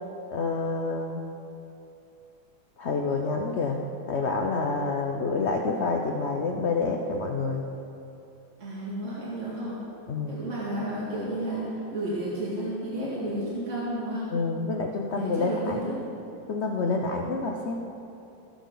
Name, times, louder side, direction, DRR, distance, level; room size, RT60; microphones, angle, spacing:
voice 1, 0.3-1.2 2.8-3.8 4.1-7.6 10.1-10.3 14.3-16.0 16.5-17.8, left 4 dB, 75° left, 2 dB, 0.6 m, -28 dB
voice 2, 8.6-9.8 10.3-14.4 15.1-16.0, right 1 dB, 40° right, -8 dB, 2.4 m, -32 dB
19.0 x 7.1 x 3.9 m, 2.7 s
omnidirectional pair, 2.2 m